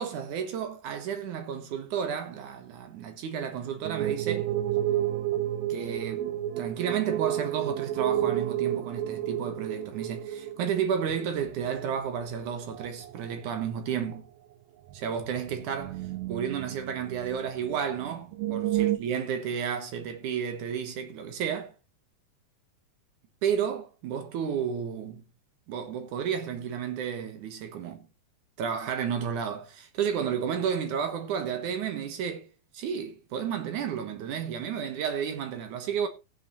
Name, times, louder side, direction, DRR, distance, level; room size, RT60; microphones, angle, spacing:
voice 1, 0.0-4.5 5.7-6.3 6.6-14.2 14.9-16.0 16.3-21.7 23.4-25.2 25.7-28.1 28.6-32.5 32.7-36.1, right 7 dB, 65° right, 2.4 m, -32 dB
sound 1, 3.8-12.4 12.7-13.2 13.6-13.7 14.1-14.2 15.2-17.4 17.7-17.8 18.1-19.0, right 12 dB, 80° right, 2.5 m, -31 dB
17.5 x 7.9 x 3.0 m
omnidirectional pair, 4.3 m